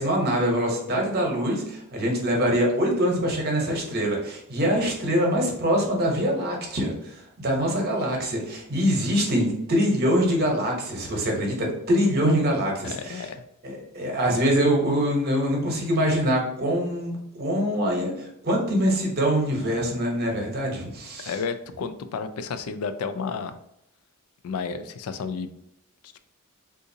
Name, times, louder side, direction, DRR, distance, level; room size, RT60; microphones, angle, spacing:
voice 1, 0.0-13.3 13.6-21.3, equal, 45° right, 0 dB, 0.9 m, -24 dB
voice 2, 12.8-13.4 21.3-23.6 24.4-25.5 26.0-26.2, left 5 dB, 75° left, 10 dB, 0.3 m, -32 dB
3.8 x 2.5 x 2.6 m, 0.79 s
head